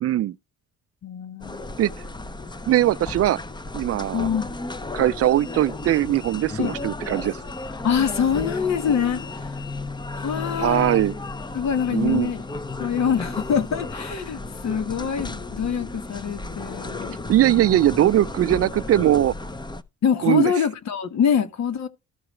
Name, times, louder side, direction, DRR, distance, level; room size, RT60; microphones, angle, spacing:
voice 1, 0.0-0.3 1.8-1.9 2.7-3.4 3.7-4.3 4.9-7.4 10.6-11.1 11.9-12.3 17.3-19.3 20.2-20.5, right 13 dB, 55° right, 0.4 m, -20 dB
voice 2, 1.0-1.7 4.1-4.5 6.6-6.7 7.8-9.5 10.2-11.0 11.5-12.4 12.8-17.2 17.5-17.6 20.0-21.9, left 7 dB, 65° left, 1.3 m, -25 dB
sound 1, 1.4-19.8, left 3 dB, 15° left, 0.6 m, -34 dB
14.5 x 4.8 x 3.1 m
cardioid pair, 90°, 30 cm